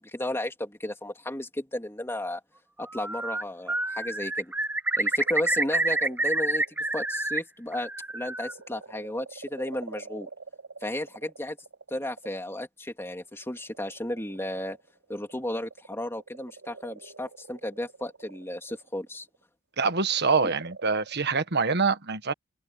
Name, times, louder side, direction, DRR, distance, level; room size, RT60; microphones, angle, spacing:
voice 1, 0.0-2.4 2.8-4.5 5.0-10.3 10.8-11.6 11.9-14.8 15.1-19.3, left 1 dB, 10° left, 3.3 m, -34 dB
Bird, 2.8-3.4 3.7-7.4 7.7-8.5, right 2 dB, 10° right, 0.8 m, -28 dB
sound 1, 5.0-7.1 7.6-12.5 13.3-19.4 20.0-21.6, right 4 dB, 70° right, 3.5 m, -47 dB
voice 2, 19.8-22.3, right 4 dB, 50° right, 1.5 m, -25 dB
open air
head